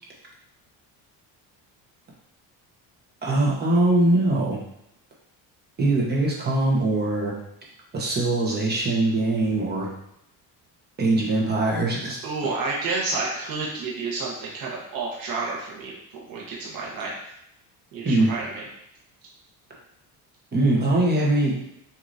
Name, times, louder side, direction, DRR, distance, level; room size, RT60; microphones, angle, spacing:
voice 1, 3.2-4.6 5.8-7.3 7.9-9.9 11.0-12.2 18.0-18.3 20.5-21.6, right 2 dB, 25° right, -3 dB, 1.1 m, -22 dB
voice 2, 12.2-17.1 17.9-18.6, right 3 dB, 65° right, -4 dB, 1.3 m, -30 dB
6.1 x 2.9 x 2.7 m, 0.80 s
cardioid pair, 155°, 38 cm